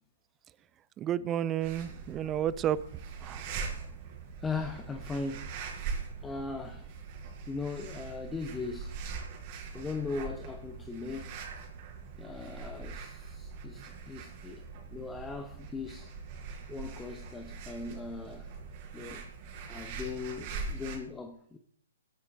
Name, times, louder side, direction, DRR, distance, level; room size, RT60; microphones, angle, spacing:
voice 1, 1.0-2.8 3.2-3.4, right 11 dB, 20° right, 0.7 m, -31 dB
sound 1, 1.6-21.0, right 5 dB, 40° right, 4.6 m, -42 dB
voice 2, 4.4-5.5 6.2-6.9 7.5-9.0 9.7-11.3 12.2-14.6 14.9-16.1 16.7-18.5 18.9-19.2 19.7-21.6, left 4 dB, 10° left, 1.2 m, -39 dB
24.5 x 8.8 x 3.7 m
figure-of-eight pair, 125°, 0 cm